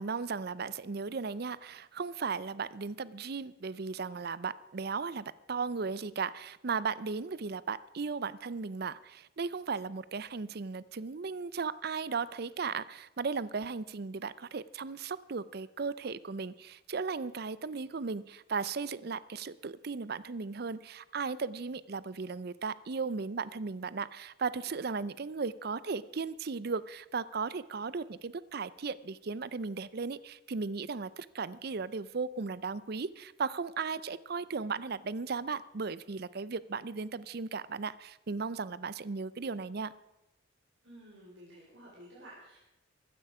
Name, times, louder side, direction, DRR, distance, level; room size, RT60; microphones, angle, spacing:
voice 1, 0.0-39.9, right 4 dB, 50° right, 18 dB, 0.5 m, -36 dB
voice 2, 40.8-42.6, right 1 dB, 70° right, -6 dB, 4.6 m, -52 dB
15.5 x 14.0 x 4.9 m, 0.95 s
head